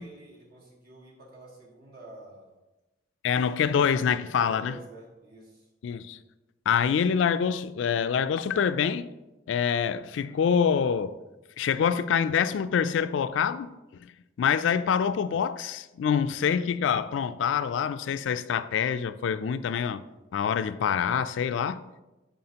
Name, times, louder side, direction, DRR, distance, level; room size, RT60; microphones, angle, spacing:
voice 1, 0.0-2.5 4.2-5.7, right 1 dB, 55° right, 1.8 m, -49 dB
voice 2, 3.2-4.7 5.8-6.2 6.7-9.1 9.5-11.2 11.6-13.7 14.0-14.1 14.4-20.0 20.3-21.8, left 7 dB, 75° left, 0.3 m, -26 dB
10.5 x 4.1 x 2.9 m
head